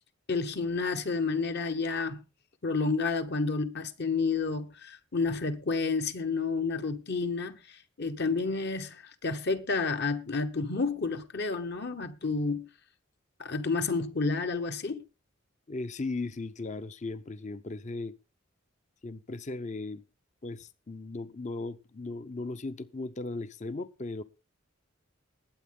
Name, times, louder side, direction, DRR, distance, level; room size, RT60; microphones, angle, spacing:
voice 1, 0.3-2.2 2.6-12.7 13.4-15.0, left 4 dB, 55° left, 1.2 m, -30 dB
voice 2, 15.7-18.1 19.0-20.0 20.4-24.2, left 3 dB, 35° left, 0.7 m, -37 dB
20.5 x 8.6 x 3.7 m
head